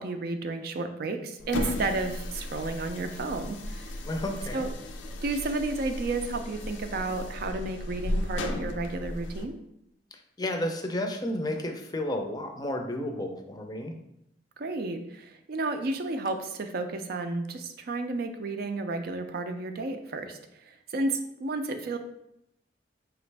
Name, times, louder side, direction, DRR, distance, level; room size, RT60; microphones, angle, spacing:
voice 1, 0.0-3.9 4.5-4.7 5.2-9.5 14.6-22.0, right 2 dB, 55° right, 7 dB, 0.4 m, -32 dB
sound 1, 1.4-9.5, left 1 dB, 90° left, 0.5 m, -35 dB
voice 2, 4.0-4.7 10.1-13.9, left 1 dB, 20° left, 4 dB, 0.5 m, -32 dB
4.9 x 3.1 x 3.3 m, 0.80 s
head